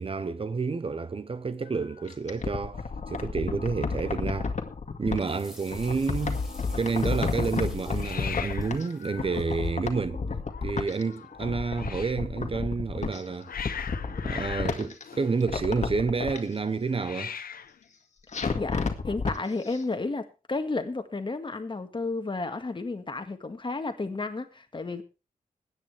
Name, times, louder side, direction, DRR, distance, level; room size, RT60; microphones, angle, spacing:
voice 1, 0.0-4.5 5.0-6.4 6.8-10.2 10.6-13.5 14.2-17.3, right 4 dB, 40° right, 0.8 m, -29 dB
Hiss, 1.7-3.0 3.3-3.7 4.0-4.1 4.3-5.0 7.9-12.3 13.0-16.0 16.9-17.8, left 7 dB, 75° left, 0.9 m, -42 dB
sound 1, 2.1-5.2 5.7-8.9 9.2-11.0 11.3-13.2 13.5-15.0 15.4-16.4 18.3-19.4 19.7-19.8, left 4 dB, 50° left, 2.0 m, -31 dB
sound 2, 5.2-9.7, left 1 dB, ahead, 4.3 m, -51 dB
voice 2, 18.6-25.0, left 3 dB, 35° left, 1.8 m, -32 dB
21.0 x 9.5 x 3.4 m
wide cardioid pair, 115°, 15 cm